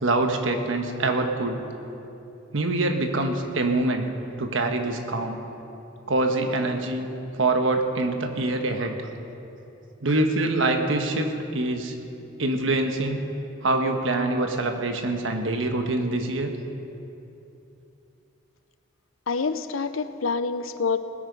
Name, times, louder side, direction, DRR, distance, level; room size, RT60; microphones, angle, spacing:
voice 1, 0.0-1.6 2.5-4.1 4.4-5.4 6.1-7.1 7.4-8.9 10.0-11.9 12.4-13.2 13.6-16.5, right 2 dB, 70° right, 5 dB, 1.3 m, -25 dB
voice 2, 19.3-21.0, left 4 dB, 85° left, 12 dB, 0.6 m, -26 dB
19.5 x 8.8 x 5.4 m, 2.8 s
head